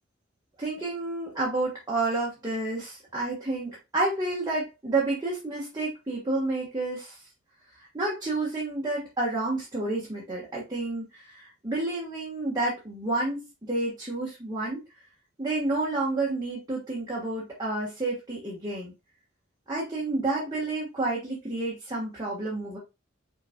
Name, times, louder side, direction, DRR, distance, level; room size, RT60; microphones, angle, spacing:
voice 1, 0.6-7.2 7.9-14.8 15.4-18.9 19.7-22.8, right 2 dB, 20° right, -5 dB, 1.4 m, -30 dB
5.7 x 3.9 x 2.3 m, 0.24 s
head